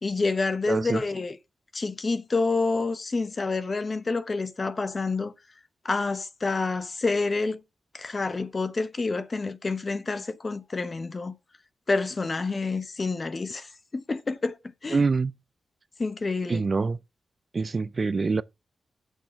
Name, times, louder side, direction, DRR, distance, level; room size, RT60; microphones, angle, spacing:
voice 1, 0.0-1.4 1.7-5.3 5.8-7.6 7.9-11.4 11.9-14.6 14.8-15.0 16.0-16.6, left 3 dB, 40° left, 0.8 m, -28 dB
voice 2, 0.7-1.0 14.9-15.3 16.5-17.0 17.5-18.4, right 4 dB, 45° right, 0.4 m, -25 dB
8.4 x 6.4 x 3.6 m
cardioid pair, 80°, 0 cm